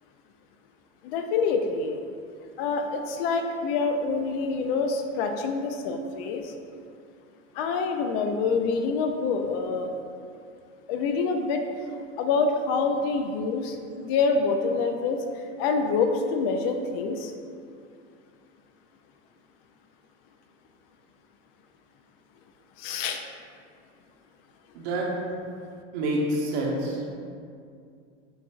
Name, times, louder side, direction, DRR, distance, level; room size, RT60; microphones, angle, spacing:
voice 1, 1.0-2.0 2.6-6.4 7.6-9.9 10.9-11.6 12.2-15.2 15.6-17.3 22.8-23.2, left 4 dB, 55° left, 5 dB, 0.5 m, -26 dB
voice 2, 24.7-25.1 25.9-27.0, right 1 dB, 60° right, -3 dB, 1.1 m, -27 dB
7.0 x 2.5 x 2.4 m, 2.3 s
supercardioid pair, 120°, 37 cm